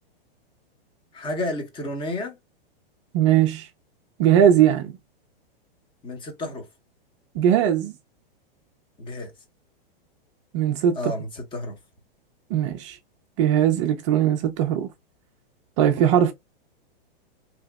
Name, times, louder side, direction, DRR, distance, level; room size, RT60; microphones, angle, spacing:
voice 1, 1.1-2.4 6.0-6.7 9.0-9.3 11.0-11.8, left 1 dB, 15° left, 0.8 m, -31 dB
voice 2, 3.1-3.7 4.2-4.9 7.3-7.9 10.5-11.1 12.5-13.0 13.4-14.9 15.8-16.3, right 10 dB, 30° right, 0.4 m, -19 dB
3.2 x 2.8 x 2.2 m
hypercardioid pair, 145°, 30 cm